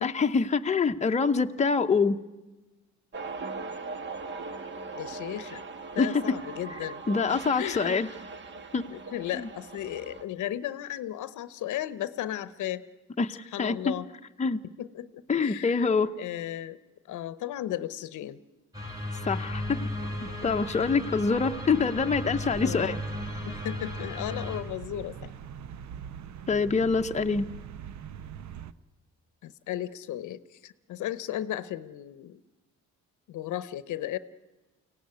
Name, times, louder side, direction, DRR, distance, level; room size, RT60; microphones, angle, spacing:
voice 1, 0.0-2.2 6.0-6.2 7.1-8.1 8.7-8.8 9.3-9.5 13.2-13.9 14.4-14.6 15.3-16.1 19.3-19.8 20.2-23.0 26.5-27.5, left 4 dB, 25° left, 6 dB, 0.8 m, -25 dB
sound 1, 3.1-10.2, right 4 dB, 40° right, 1.5 m, -40 dB
voice 2, 4.9-5.6 5.9-7.0 7.6-8.0 8.9-12.8 13.5-14.1 14.8-16.8 17.1-18.4 22.6-23.0 23.4-25.3 29.4-32.4 33.3-34.2, left 12 dB, 80° left, 15 dB, 0.8 m, -35 dB
sound 2, 18.7-24.6, left 1 dB, 10° right, 4.2 m, -35 dB
sound 3, 19.5-28.7, right 8 dB, 70° right, 0.8 m, -43 dB
23.5 x 17.0 x 9.6 m, 1.1 s
cardioid pair, 90°, 30 cm